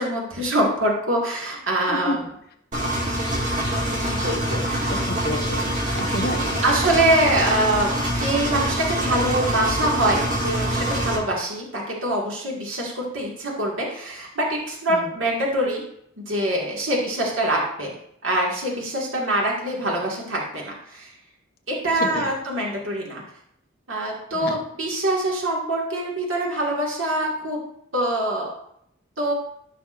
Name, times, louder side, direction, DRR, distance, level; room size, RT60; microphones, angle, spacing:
voice 1, 0.0-2.2 4.0-5.0 6.6-7.9 8.2-15.8 16.3-17.9 18.2-21.1 21.7-23.2 23.9-27.6 27.9-28.5 29.2-29.3, right 1 dB, 70° right, -3 dB, 1.9 m, -24 dB
Engine, 2.7-11.2, right 1 dB, 40° right, 2.1 m, -25 dB
voice 2, 5.1-5.7 5.9-6.6 14.9-15.1 22.1-22.3 24.3-24.5, left 1 dB, 50° left, 2 dB, 1.2 m, -29 dB
14.0 x 6.0 x 2.5 m, 0.73 s
head